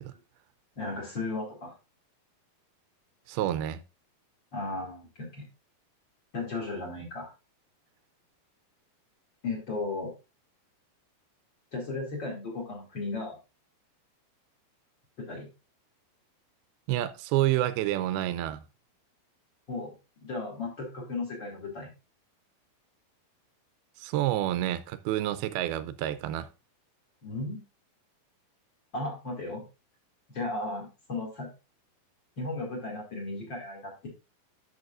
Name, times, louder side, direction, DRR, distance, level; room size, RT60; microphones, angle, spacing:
voice 1, 0.8-1.7 4.5-5.5 6.3-7.3 9.4-10.1 11.7-13.4 15.2-15.5 19.7-19.9 20.2-21.9 27.2-27.6 28.9-29.6 30.3-31.5 32.4-34.1, left 2 dB, 35° left, 2.7 m, -35 dB
voice 2, 3.3-3.8 16.9-18.6 24.0-26.5, right 13 dB, 85° right, 2.6 m, -28 dB
10.5 x 7.1 x 2.5 m
omnidirectional pair, 4.3 m